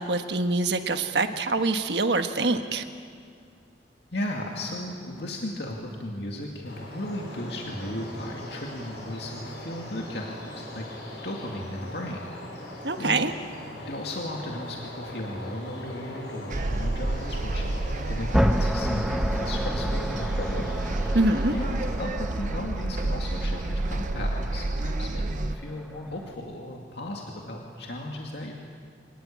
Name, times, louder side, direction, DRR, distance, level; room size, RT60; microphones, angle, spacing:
voice 1, 0.0-2.8 12.8-13.3 21.1-21.5, right 2 dB, 70° right, 7 dB, 1.4 m, -25 dB
voice 2, 4.1-10.8 11.2-12.3 13.0-13.2 13.8-20.7 21.5-28.5, left 1 dB, 65° left, 0 dB, 2.4 m, -35 dB
sound 1, 6.6-22.0, left 1 dB, 90° left, 6.3 m, -40 dB
sound 2, 16.5-25.5, right 2 dB, 45° right, 0.6 m, -29 dB
sound 3, 18.3-26.3, equal, 5° right, 0.7 m, -31 dB
25.5 x 19.5 x 8.6 m, 2.3 s
head